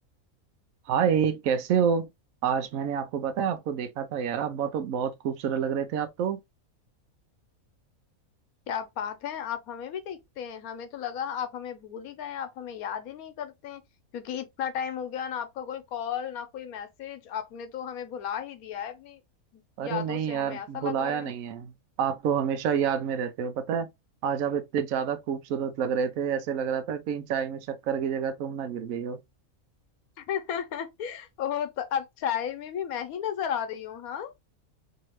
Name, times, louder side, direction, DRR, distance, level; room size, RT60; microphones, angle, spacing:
voice 1, 0.9-2.1 2.4-6.4 19.8-21.7 22.0-23.9 24.2-29.2, right 7 dB, 70° right, 1.0 m, -28 dB
voice 2, 8.7-13.8 14.1-19.2 19.5-21.3 30.2-34.3, left 8 dB, 80° left, 1.2 m, -34 dB
2.9 x 2.8 x 3.0 m
omnidirectional pair, 1.5 m